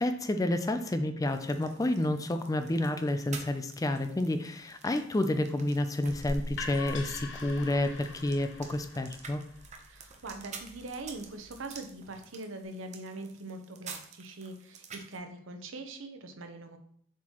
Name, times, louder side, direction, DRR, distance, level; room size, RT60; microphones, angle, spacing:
voice 1, 0.0-9.4, left 1 dB, 20° left, 8 dB, 0.4 m, -30 dB
sound 1, 1.3-15.2, right 5 dB, 35° right, 0.7 m, -50 dB
sound 2, 6.1-11.9, left 2 dB, 70° left, 0.8 m, -42 dB
voice 2, 9.8-16.8, right 2 dB, 85° right, 6 dB, 0.8 m, -42 dB
7.2 x 4.4 x 3.0 m, 0.63 s
head